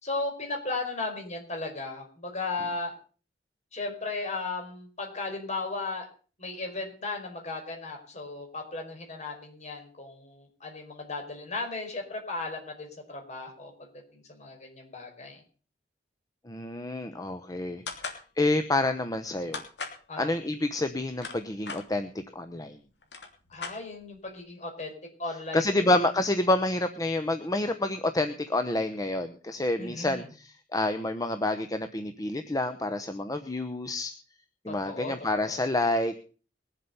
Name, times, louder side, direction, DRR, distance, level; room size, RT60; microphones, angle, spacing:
voice 1, 0.0-2.9 3.7-6.1 6.4-13.7 14.1-15.4 20.1-20.3 23.5-24.9 25.2-25.9 29.8-30.2 34.7-35.6, left 3 dB, 45° left, 3 dB, 4.9 m, -36 dB
voice 2, 16.4-19.6 20.2-22.8 25.5-34.1 34.6-36.2, left 2 dB, 20° left, 9 dB, 0.9 m, -28 dB
sound 1, 17.9-18.2 19.5-20.0 20.9-21.8 22.7-22.8 23.0-24.2, left 4 dB, 75° left, 3.1 m, -38 dB
21.5 x 7.9 x 5.5 m, 0.39 s
head